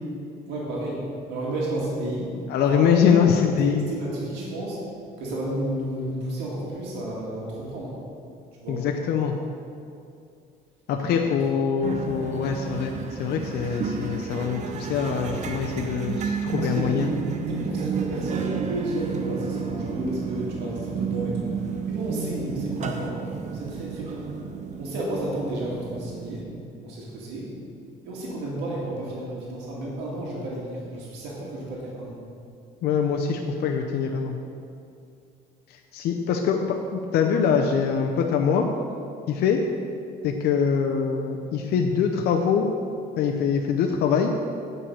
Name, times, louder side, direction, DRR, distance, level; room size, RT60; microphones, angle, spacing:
voice 1, 0.5-2.3 2.6-3.3 3.6-4.8 5.2-8.0 8.6-8.9 11.1-11.4 16.6-16.9 17.5-21.5 21.9-24.3 24.8-26.5 26.8-27.5 28.0-32.2, right 1 dB, 90° right, -4 dB, 2.0 m, -32 dB
voice 2, 2.5-3.9 8.7-9.3 10.9-17.1 32.8-34.4 35.7-38.7 39.3-39.6 40.2-42.7 43.2-44.3, left 7 dB, 70° left, 2 dB, 0.6 m, -23 dB
sound 1, 11.8-26.4, right 5 dB, 45° right, 0.8 m, -31 dB
8.6 x 5.4 x 5.5 m, 2.5 s
cardioid pair, 110°, 17 cm